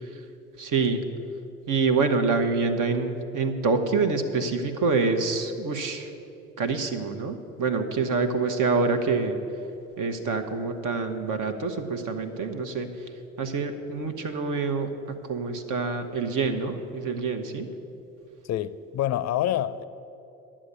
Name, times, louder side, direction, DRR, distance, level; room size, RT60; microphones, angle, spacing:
voice 1, 0.6-1.1 1.7-6.1 6.6-9.4 10.0-12.9 13.4-17.7, right 4 dB, 55° right, 1.1 m, -26 dB
voice 2, 18.4-19.8, left 12 dB, 45° left, 0.5 m, -27 dB
11.0 x 7.4 x 6.7 m
hypercardioid pair, 50°, 38 cm